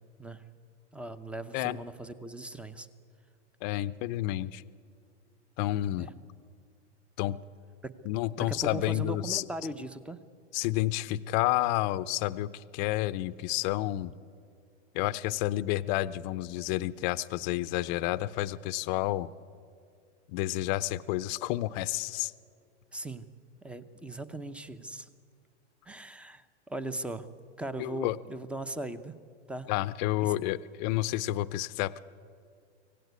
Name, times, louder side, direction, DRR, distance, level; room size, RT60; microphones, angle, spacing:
voice 1, 0.9-2.9 6.0-6.1 7.8-7.9 8.4-10.2 22.9-23.3 23.6-25.1 25.9-27.3 27.6-29.2 29.5-29.7 30.2-30.3 30.9-31.1, right 2 dB, 5° right, 13 dB, 0.7 m, -39 dB
voice 2, 3.6-4.6 5.6-6.1 7.2-7.4 8.0-9.4 10.5-14.1 14.9-19.3 20.3-22.3 27.8-28.2 29.7-32.0, left 16 dB, 40° left, 14 dB, 0.7 m, -30 dB
24.5 x 17.0 x 9.4 m, 2.3 s
hypercardioid pair, 140°, 35 cm